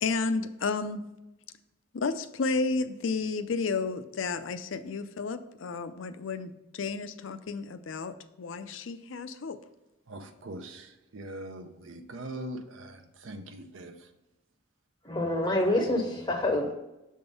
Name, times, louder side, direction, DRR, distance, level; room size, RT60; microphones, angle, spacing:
voice 1, 0.0-1.0 1.9-9.6, left 4 dB, 80° left, 0.5 m, -32 dB
voice 2, 10.1-14.1 15.4-15.6, right 1 dB, 80° right, 0.6 m, -42 dB
voice 3, 15.0-16.7, left 1 dB, 25° left, 0.7 m, -27 dB
6.9 x 3.7 x 5.2 m
head